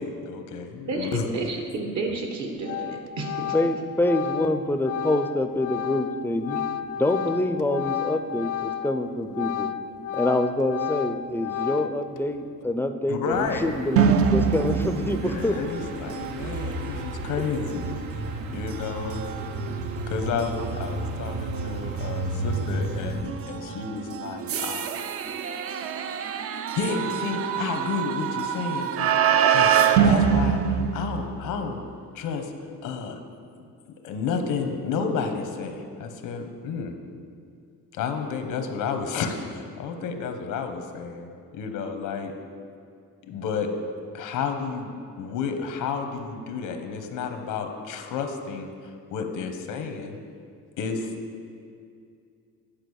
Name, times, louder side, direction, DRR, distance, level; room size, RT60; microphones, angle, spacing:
voice 1, 0.0-1.3 13.1-13.7 15.2-18.0 18.5-19.3 20.1-25.0 26.7-29.1 29.5-29.7 30.0-31.8 32.1-32.5 32.8-33.2 34.0-37.0 37.9-42.3 43.3-43.7 44.1-48.7 49.1-50.2 50.8-51.1, left 5 dB, 90° left, 6 dB, 1.1 m, -31 dB
voice 2, 0.9-3.5, right 3 dB, 65° right, 3 dB, 1.3 m, -31 dB
Organ, 2.1-2.3 2.6-9.0 9.3-12.2, left 10 dB, 75° left, 0.5 m, -32 dB
voice 3, 3.5-6.6 7.0-9.7 10.1-15.6, left 1 dB, 5° left, 7 dB, 0.4 m, -26 dB
sound 1, 13.3-23.2, right 2 dB, 85° right, 0.9 m, -33 dB
sound 2, 14.0-31.7, right 7 dB, 45° right, 0.5 m, -26 dB
10.5 x 5.0 x 6.3 m, 2.3 s
cardioid pair, 125°, 31 cm